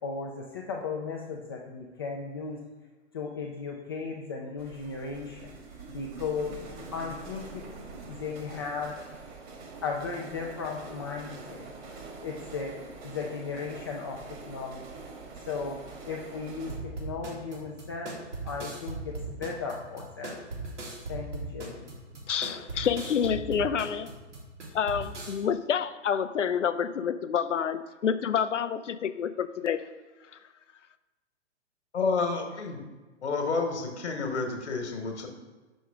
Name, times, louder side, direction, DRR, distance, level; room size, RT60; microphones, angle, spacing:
voice 1, 0.0-2.6 3.1-5.6 5.9-7.7 8.1-9.0 9.2-9.4 9.8-11.7 12.2-12.8 13.0-14.9 15.5-15.8 16.1-18.2 18.4-20.4 21.1-21.9, left 5 dB, 20° left, -1 dB, 0.3 m, -36 dB
sound 1, 4.6-16.8, right 3 dB, 40° right, 1.5 m, -44 dB
sound 2, 16.7-25.4, right 3 dB, 70° right, 2.0 m, -38 dB
voice 2, 22.3-24.1 24.7-29.8, left 7 dB, 85° left, 13 dB, 0.5 m, -28 dB
voice 3, 31.9-32.8 33.2-35.3, left 4 dB, 65° left, 4 dB, 1.3 m, -29 dB
6.2 x 6.2 x 3.5 m, 1.2 s
figure-of-eight pair, 115°, 36 cm